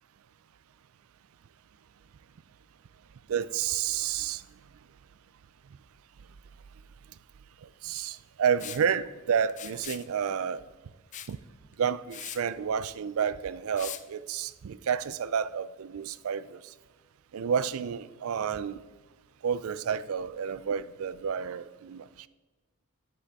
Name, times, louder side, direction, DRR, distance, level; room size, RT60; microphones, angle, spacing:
voice 1, 3.3-4.4 7.8-10.6 11.3-11.4 11.8-16.6 17.3-18.8 19.4-22.3, right 7 dB, 70° right, 17 dB, 0.4 m, -30 dB
Liquid, 8.6-8.8 9.5-10.1 11.1-11.3 11.7-11.8 12.1-12.4 13.8-14.0, left 11 dB, 35° left, 0.4 m, -40 dB
10.0 x 7.5 x 4.1 m, 1.2 s
head